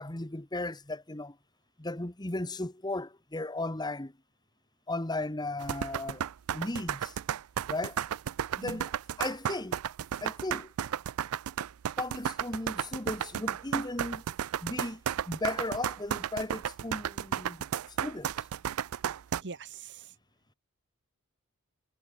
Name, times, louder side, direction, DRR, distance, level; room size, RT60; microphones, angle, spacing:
voice 1, 0.0-1.4 1.8-4.1 4.9-7.1 7.7-8.0 8.5-8.9 9.2-9.8 10.2-10.7 12.0-14.2 14.6-15.0 15.3-17.6 18.0-18.3, left 2 dB, 20° left, 1.3 m, -36 dB
sound 1, 5.6-19.4, right 9 dB, 80° right, 0.4 m, -33 dB
voice 2, 19.4-20.1, right 4 dB, 55° right, 1.2 m, -43 dB
head